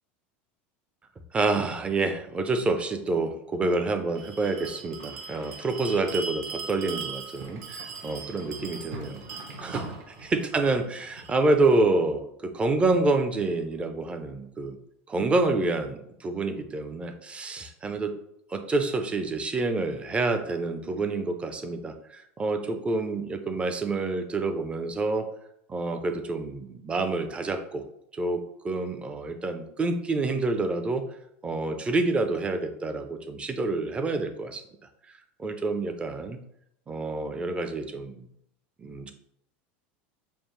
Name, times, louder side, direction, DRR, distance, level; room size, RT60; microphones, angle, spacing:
voice 1, 1.3-9.2 9.6-9.9 10.2-14.8 15.1-18.2 18.5-25.3 25.7-27.8 28.1-31.0 31.4-34.6 35.4-36.4 36.9-38.3 38.8-39.1, right 3 dB, 20° right, 8 dB, 0.4 m, -28 dB
Bell, 4.1-11.4, right 4 dB, 55° right, 0.8 m, -39 dB
5.2 x 2.0 x 3.1 m, 0.74 s
supercardioid pair, 120°, 6 cm